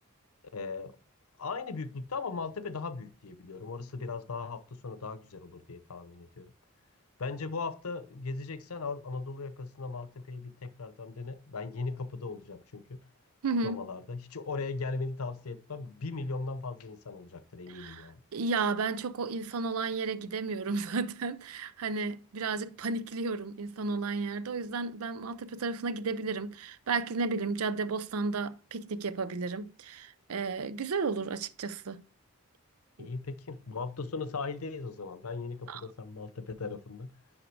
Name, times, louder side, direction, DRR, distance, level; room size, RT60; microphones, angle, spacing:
voice 1, 0.5-1.0 1.4-6.5 7.2-13.1 13.6-18.2 33.0-37.2, left 4 dB, 85° left, 0.7 m, -38 dB
voice 2, 13.4-13.8 17.7-32.0 33.0-33.1 35.7-35.8, right 4 dB, 85° right, 0.5 m, -33 dB
10.0 x 3.6 x 4.6 m
head